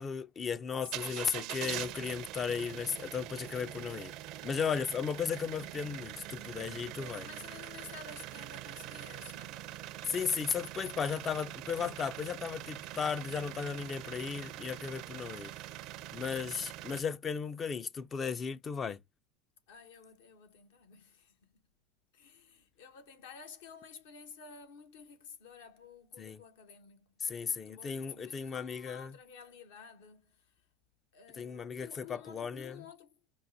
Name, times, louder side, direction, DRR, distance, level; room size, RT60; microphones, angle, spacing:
voice 1, 0.0-4.1 4.4-7.2 10.1-15.5 16.1-19.0 26.2-26.4 27.2-29.1 31.4-32.8, left 6 dB, 30° left, 0.3 m, -35 dB
voice 2, 0.8-1.7 6.9-9.7 16.4-16.8 19.7-21.6 22.1-27.1 27.4-30.7 31.1-33.2, left 6 dB, 70° left, 1.0 m, -52 dB
sound 1, 0.8-17.0, right 14 dB, 55° right, 0.4 m, -44 dB
sound 2, 3.5-5.6, left 7 dB, 55° left, 2.2 m, -64 dB
5.5 x 2.1 x 2.7 m
hypercardioid pair, 90°, 0 cm